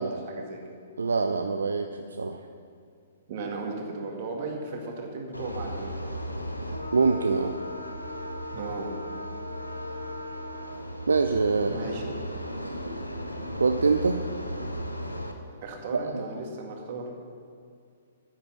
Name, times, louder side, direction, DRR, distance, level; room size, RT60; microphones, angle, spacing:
voice 1, 0.0-0.8 3.3-6.1 8.5-8.9 11.6-12.1 15.6-17.1, right 3 dB, 40° right, 1 dB, 2.1 m, -36 dB
voice 2, 1.0-2.4 6.9-7.6 11.1-11.7 13.6-14.2 15.9-16.2, right 4 dB, 70° right, 7 dB, 0.5 m, -24 dB
sound 1, 5.3-15.3, equal, 90° left, 1.0 m, -36 dB
10.5 x 8.8 x 5.8 m, 2.3 s
figure-of-eight pair, 115°, 0 cm